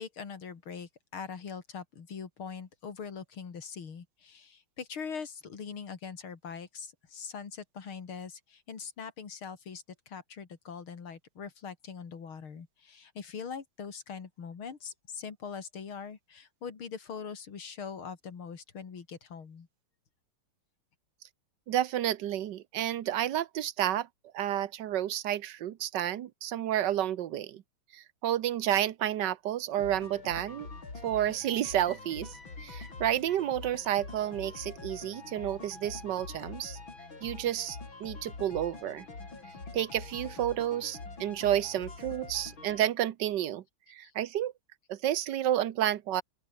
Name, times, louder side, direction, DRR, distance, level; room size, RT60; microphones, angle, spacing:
voice 1, 0.0-19.7 44.0-44.1, left 6 dB, 90° left, 3.4 m, -42 dB
voice 2, 21.7-24.1 24.3-27.6 27.9-30.7 31.0-36.8 37.2-39.1 39.7-43.6 43.9-44.5 44.9-46.2, right 12 dB, 65° right, 1.4 m, -30 dB
sound 1, 29.8-42.8, left 3 dB, 70° left, 5.7 m, -45 dB
open air
omnidirectional pair, 2.3 m